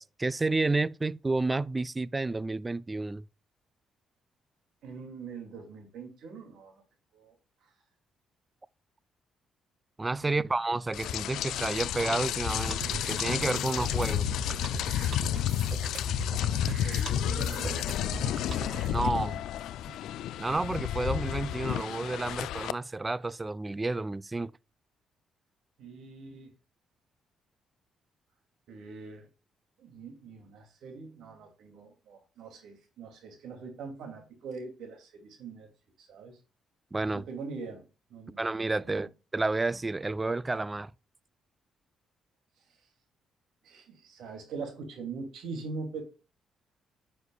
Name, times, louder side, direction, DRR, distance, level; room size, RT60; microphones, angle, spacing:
voice 1, 0.0-3.2 10.0-14.3 18.9-19.4 19.9-20.0 20.4-24.5 36.9-37.3 38.4-40.9, right 3 dB, 20° right, 0.4 m, -30 dB
voice 2, 4.8-6.8 7.1-7.3 10.2-10.5 16.8-17.8 25.8-26.5 28.7-29.3 29.8-35.7 36.0-36.4 37.1-37.8 38.1-38.4 38.8-39.1 43.6-46.0, right 4 dB, 75° right, 2.6 m, -42 dB
Rain, 10.9-22.7, left 11 dB, 80° left, 0.3 m, -31 dB
sound 1, 12.6-18.9, right 4 dB, 50° right, 1.0 m, -39 dB
9.6 x 6.4 x 2.4 m
cardioid pair, 90°, 0 cm